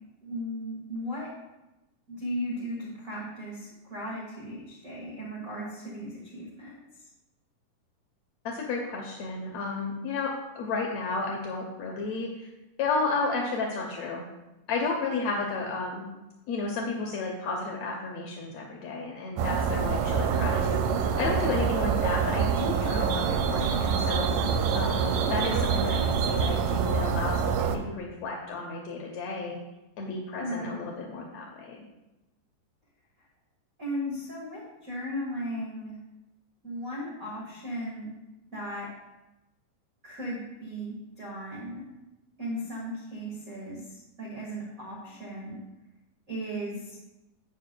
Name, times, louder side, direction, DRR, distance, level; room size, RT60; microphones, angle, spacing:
voice 1, 0.2-1.3 2.1-6.8 30.4-30.7 33.8-35.9 36.6-38.1 38.5-38.9 40.0-41.9 42.4-45.6 46.3-47.0, equal, 50° right, -5 dB, 1.0 m, -36 dB
voice 2, 8.4-12.5 12.8-14.2 14.7-16.1 16.5-24.3 24.7-29.6 30.0-31.9, left 3 dB, 75° left, 0 dB, 1.6 m, -32 dB
sound 1, 19.4-27.8, right 6 dB, 80° right, 2.2 m, -26 dB
11.5 x 8.6 x 2.2 m, 1.0 s
omnidirectional pair, 4.1 m